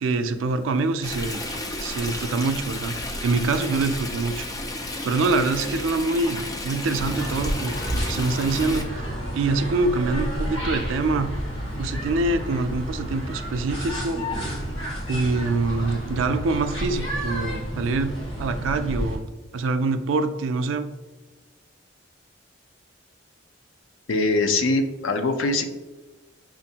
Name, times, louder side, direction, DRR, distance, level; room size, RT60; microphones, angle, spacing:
voice 1, 0.0-1.4 1.8-3.0 3.2-4.5 5.0-9.0 9.3-11.3 11.7-14.2 15.1-18.1 18.4-19.2 19.5-20.9, right 3 dB, 80° right, 9 dB, 0.4 m, -25 dB
Stream, 1.0-8.8, left 1 dB, 20° left, 0.4 m, -32 dB
sound 1, 6.9-19.1, equal, 60° left, 1.4 m, -30 dB
voice 2, 24.1-25.7, left 2 dB, 85° left, 6 dB, 0.5 m, -22 dB
5.9 x 2.5 x 2.8 m, 1.2 s
head